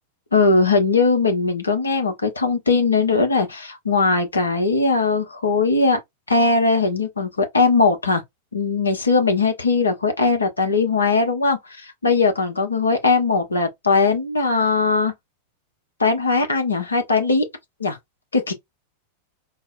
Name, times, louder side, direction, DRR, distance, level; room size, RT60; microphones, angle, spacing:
voice 1, 0.3-6.0 6.3-8.2 8.5-15.1 16.0-17.5 17.8-18.0 18.3-18.5, left 4 dB, 75° left, 0.9 m, -19 dB
3.9 x 2.1 x 2.6 m
figure-of-eight pair, 90°, 0 cm